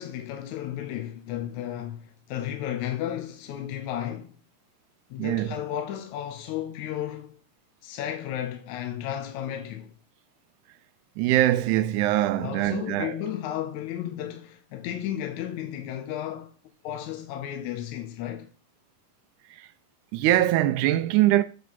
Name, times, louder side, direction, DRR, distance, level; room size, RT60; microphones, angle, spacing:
voice 1, 0.0-4.4 5.1-7.4 7.8-9.9 12.4-16.6 16.8-18.5, left 11 dB, 75° left, 1.9 m, -33 dB
voice 2, 5.2-5.6 11.2-13.2 19.5-19.7 20.1-21.4, right 14 dB, 85° right, 1.7 m, -23 dB
7.6 x 3.7 x 5.8 m
omnidirectional pair, 4.0 m